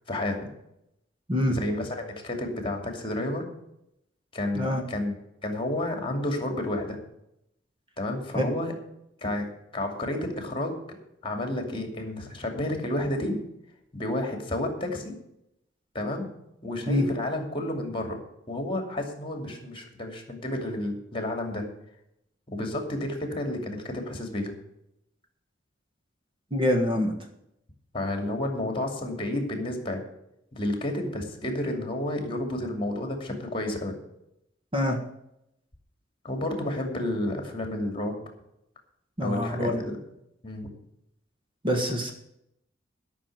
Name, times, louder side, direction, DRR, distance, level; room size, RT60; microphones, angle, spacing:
voice 1, 0.1-0.5 1.4-3.5 4.3-5.2 5.4-7.0 8.0-8.7 9.2-9.5 9.7-10.8 11.2-13.4 13.9-15.2 15.9-16.3 16.6-18.2 18.5-21.6 22.5-24.5 27.9-30.0 30.6-34.0 36.2-38.2 39.2-40.0 40.4-40.7, left 1 dB, 25° left, 4 dB, 2.6 m, -31 dB
voice 2, 26.5-27.1 34.7-35.0 39.2-39.8 41.6-42.1, left 1 dB, 25° right, 3 dB, 1.5 m, -25 dB
12.5 x 6.3 x 9.1 m, 0.81 s
head